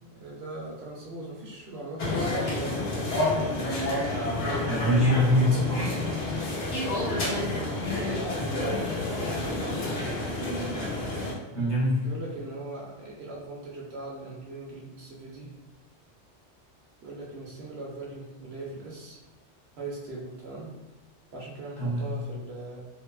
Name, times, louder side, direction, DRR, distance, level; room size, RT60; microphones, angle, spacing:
voice 1, 0.0-4.2 6.9-9.3 9.8-10.5 12.0-15.5 17.0-19.2 19.8-20.7 21.3-22.9, right 2 dB, 65° right, -4 dB, 0.9 m, -40 dB
sound 1, 2.0-11.3, left 2 dB, 90° left, 1.0 m, -29 dB
voice 2, 4.6-5.9 11.5-12.1 21.8-22.0, left 1 dB, 25° left, -9 dB, 0.7 m, -23 dB
2.7 x 2.2 x 2.3 m, 1.1 s
omnidirectional pair, 1.2 m